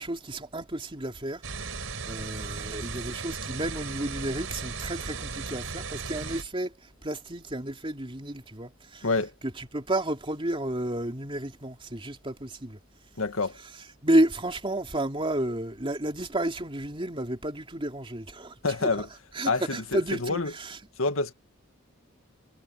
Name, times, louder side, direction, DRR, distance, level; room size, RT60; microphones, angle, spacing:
voice 1, 0.0-1.4 2.0-6.7 7.0-9.0 9.4-12.8 14.0-18.5 18.8-18.9 19.3-20.8, right 1 dB, 25° right, 3.0 m, -31 dB
sound 1, 1.4-6.4, right 4 dB, 80° right, 4.0 m, -36 dB
voice 2, 13.2-13.6 18.6-19.1 19.5-20.5 21.0-21.3, left 3 dB, 85° left, 2.0 m, -27 dB
head